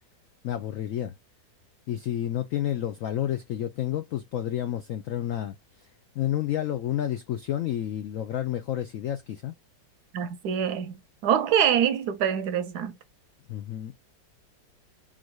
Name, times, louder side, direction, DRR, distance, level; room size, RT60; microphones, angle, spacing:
voice 1, 0.4-1.1 1.9-5.6 6.1-9.5 13.5-13.9, left 11 dB, 80° left, 0.7 m, -30 dB
voice 2, 10.1-11.0 11.2-12.9, right 9 dB, 70° right, 1.0 m, -25 dB
3.9 x 2.5 x 4.5 m
omnidirectional pair, 2.0 m